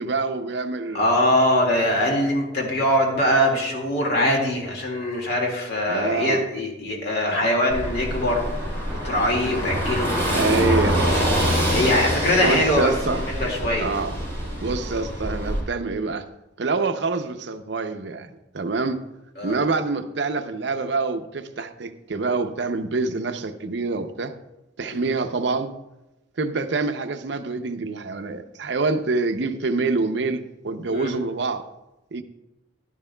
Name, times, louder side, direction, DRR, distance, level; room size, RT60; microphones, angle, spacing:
voice 1, 0.0-1.1 5.9-6.4 10.3-11.2 12.4-13.2 13.8-14.1 14.6-16.2 16.6-18.3 18.5-19.0 19.4-24.3 24.8-25.7 26.4-31.6 32.1-32.2, right 3 dB, 65° right, 9 dB, 0.6 m, -26 dB
voice 2, 0.9-8.4 9.0-10.8 11.7-14.0 19.4-19.6 24.9-25.1 30.9-31.1, left 1 dB, 60° left, 0 dB, 2.1 m, -22 dB
Car passing by / Engine, 7.7-15.6, equal, 15° left, 3.2 m, -25 dB
11.5 x 11.0 x 2.2 m, 0.96 s
head